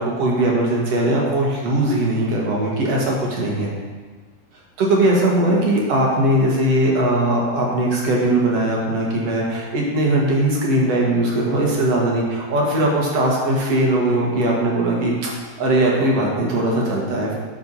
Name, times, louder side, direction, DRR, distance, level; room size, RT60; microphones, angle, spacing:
voice 1, 0.0-3.7 4.8-17.3, right 1 dB, 60° right, -3 dB, 1.6 m, -20 dB
10.0 x 4.5 x 5.5 m, 1.4 s
omnidirectional pair, 4.7 m